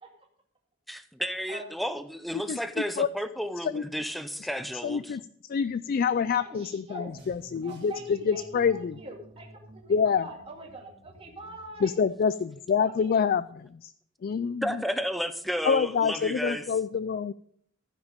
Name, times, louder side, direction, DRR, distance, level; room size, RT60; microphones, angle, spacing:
voice 1, 0.9-5.2 14.6-16.7, equal, ahead, 10 dB, 0.6 m, -32 dB
voice 2, 4.8-5.2 5.5-9.0 9.9-10.3 11.8-13.9 14.2-14.8 15.7-17.3, left 6 dB, 45° left, 14 dB, 0.3 m, -27 dB
voice 3, 6.4-7.1 7.6-11.9 12.8-13.2, right 1 dB, 30° right, 0 dB, 2.2 m, -43 dB
sound 1, 7.1-11.9, right 1 dB, 55° right, 3.2 m, -52 dB
14.5 x 5.9 x 5.1 m, 0.63 s
head